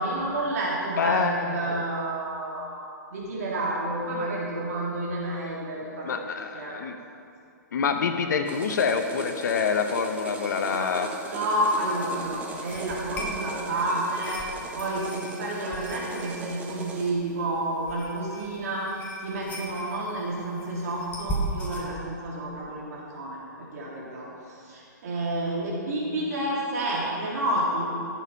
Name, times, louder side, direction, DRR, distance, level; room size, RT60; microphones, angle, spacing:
voice 1, 0.0-2.8 3.1-6.3 6.5-6.8 10.7-10.9 11.3-14.4 14.7-27.9, right 1 dB, 55° right, -5 dB, 3.3 m, -30 dB
voice 2, 1.0-1.8 6.0-7.0 7.7-11.1, left 6 dB, 65° left, 6 dB, 0.9 m, -26 dB
sound 1, 8.5-17.1, right 3 dB, 15° right, 1.0 m, -39 dB
sound 2, 11.1-21.9, right 2 dB, 15° left, 1.7 m, -39 dB
15.5 x 7.3 x 5.7 m, 2.5 s
hypercardioid pair, 155°, 10 cm